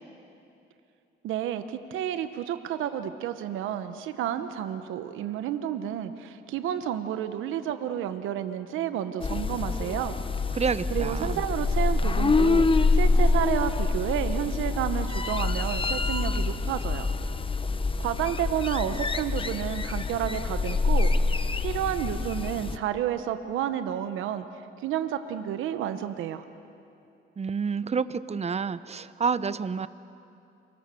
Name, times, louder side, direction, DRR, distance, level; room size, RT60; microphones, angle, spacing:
voice 1, 1.2-10.2 10.9-12.7 12.9-17.1 18.0-21.1 21.6-24.4 24.8-26.4, right 10 dB, 90° right, 10 dB, 1.1 m, -30 dB
sound 1, 9.2-22.8, left 3 dB, 25° left, 1.0 m, -26 dB
voice 2, 10.5-11.4 27.4-29.9, right 5 dB, 35° right, 15 dB, 0.8 m, -29 dB
28.0 x 24.5 x 7.0 m, 2.7 s
cardioid pair, 90°, 20 cm